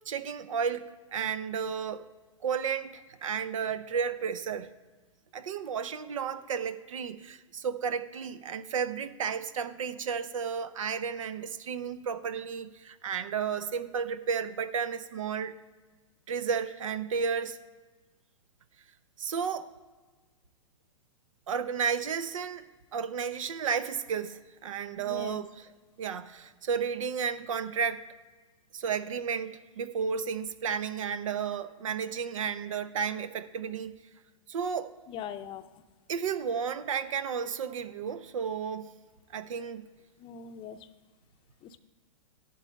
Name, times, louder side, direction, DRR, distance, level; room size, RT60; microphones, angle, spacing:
voice 1, 0.1-2.0 2.4-4.7 5.3-15.6 16.3-17.6 19.2-19.7 21.5-22.6 22.9-25.7 26.0-28.1 28.7-33.9 34.5-34.9 36.1-38.9 39.3-39.8, right 6 dB, 70° right, 0.7 m, -32 dB
voice 2, 25.0-25.4 35.1-35.7 40.2-40.8 41.6-41.8, left 8 dB, 30° left, 0.6 m, -41 dB
11.0 x 4.0 x 7.5 m
hypercardioid pair, 115°, 17 cm